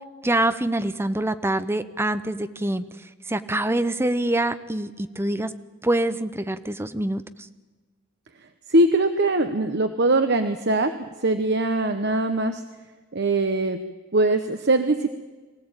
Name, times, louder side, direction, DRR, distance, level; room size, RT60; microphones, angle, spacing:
voice 1, 0.2-2.8 3.3-5.5 5.8-7.2, right 1 dB, 10° right, 11 dB, 0.8 m, -25 dB
voice 2, 8.7-10.9 11.2-12.6 13.1-13.8 14.1-15.1, right 2 dB, 50° right, 8 dB, 1.0 m, -21 dB
23.5 x 16.0 x 8.9 m, 1.3 s
head